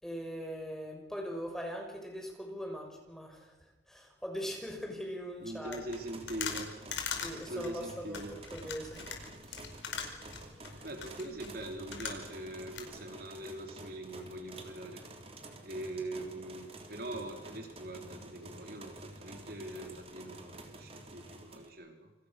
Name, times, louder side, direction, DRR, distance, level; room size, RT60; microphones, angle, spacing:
voice 1, 0.0-3.5 3.9-5.8 7.2-7.8 8.1-8.2 8.5-9.0 9.5-9.6 10.7-10.8, equal, 5° left, 1 dB, 6.0 m, -41 dB
voice 2, 5.4-6.8 7.3-8.4 9.7-9.8 10.8-15.0 15.6-22.1, right 1 dB, 55° right, 4 dB, 3.4 m, -42 dB
sound 1, 5.6-12.5 12.7-12.8, left 7 dB, 85° left, 5.0 m, -41 dB
sound 2, 5.9-21.7, right 2 dB, 35° right, 3.5 m, -50 dB
28.5 x 26.5 x 6.6 m, 0.96 s
head